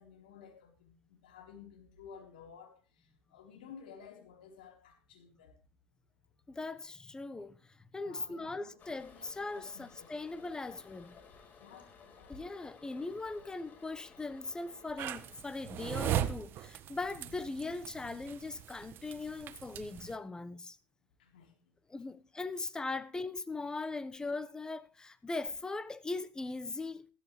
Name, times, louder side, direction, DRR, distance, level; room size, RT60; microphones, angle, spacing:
voice 1, 0.0-5.6 8.0-8.8 9.1-9.3 9.5-10.2 11.6-12.4 17.1-17.3 21.2-21.5, left 7 dB, 90° left, 4.1 m, -54 dB
voice 2, 6.5-7.6 7.9-11.1 12.3-20.8 21.9-27.1, left 3 dB, 15° left, 1.2 m, -40 dB
Toilet flush, 8.8-15.9, left 5 dB, 40° left, 4.5 m, -57 dB
sound 1, 15.0-20.2, right 11 dB, 50° right, 1.2 m, -38 dB
16.0 x 13.5 x 3.3 m
supercardioid pair, 95°, 5 cm